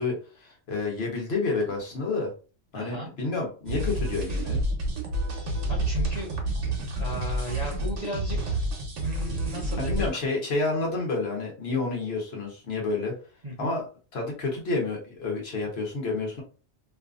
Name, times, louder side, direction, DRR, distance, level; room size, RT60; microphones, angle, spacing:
voice 1, 0.0-2.3 2.7-4.6 9.8-13.1 13.6-13.8 14.1-16.4, left 3 dB, 60° left, 0 dB, 1.1 m, -29 dB
voice 2, 2.7-3.1 5.7-6.3 7.0-8.4 9.0-10.1 13.4-13.7, equal, 45° right, -2 dB, 0.6 m, -35 dB
sound 1, 3.7-10.1, right 1 dB, 80° right, 1.1 m, -29 dB
2.7 x 2.5 x 2.4 m, 0.36 s
omnidirectional pair, 1.2 m